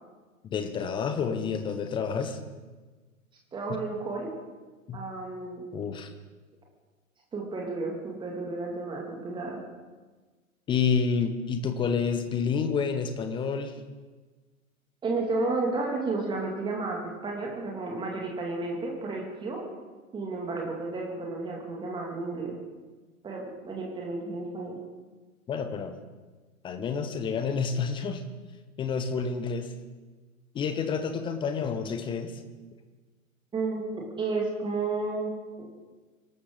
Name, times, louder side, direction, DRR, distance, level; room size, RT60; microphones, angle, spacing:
voice 1, 0.5-2.4 3.7-3.8 4.9-5.0 5.7-6.1 10.7-13.7 25.5-25.9 26.6-28.2 28.8-29.7 30.5-32.4, left 6 dB, 10° left, 8 dB, 0.8 m, -29 dB
voice 2, 3.5-4.3 4.9-5.6 7.3-9.6 15.0-19.6 20.1-22.6 23.2-24.8 33.5-35.7, right 3 dB, 10° right, -1 dB, 2.4 m, -32 dB
24.5 x 12.5 x 3.9 m, 1.3 s
figure-of-eight pair, 110°, 42 cm